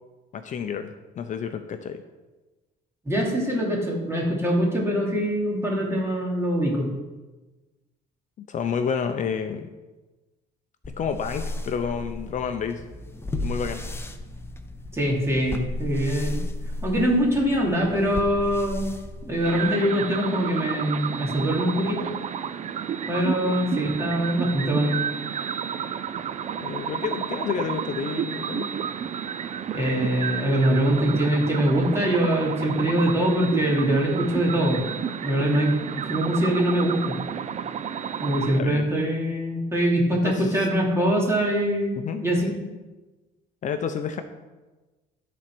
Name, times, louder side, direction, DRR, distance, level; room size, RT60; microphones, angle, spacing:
voice 1, 0.3-2.0 8.5-9.7 11.0-12.8 13.4-13.8 26.6-28.7 38.5-38.9 40.2-40.7 42.0-42.2 43.6-44.2, left 6 dB, 45° left, 8 dB, 0.7 m, -30 dB
voice 2, 3.0-6.9 14.9-16.4 16.8-18.9 19.2-22.1 23.1-25.0 29.7-34.8 35.2-37.2 38.2-42.6, equal, 15° right, -2 dB, 2.8 m, -23 dB
sound 1, 10.8-19.8, left 2 dB, 15° left, 0.7 m, -34 dB
sound 2, 19.4-38.6, right 8 dB, 40° right, 0.5 m, -31 dB
13.0 x 4.4 x 6.1 m, 1.2 s
cardioid pair, 110°, 17 cm